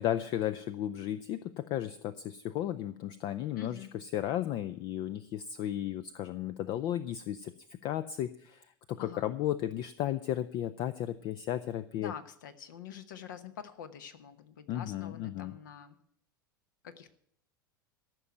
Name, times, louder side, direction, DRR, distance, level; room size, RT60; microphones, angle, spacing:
voice 1, 0.0-7.5 7.8-12.1 14.7-15.5, left 12 dB, 40° left, 14 dB, 0.5 m, -34 dB
voice 2, 3.6-3.9 9.0-9.3 12.0-16.0 16.8-17.1, left 8 dB, 60° left, 11 dB, 1.1 m, -46 dB
14.0 x 6.1 x 8.9 m, 0.67 s
figure-of-eight pair, 80°, 11 cm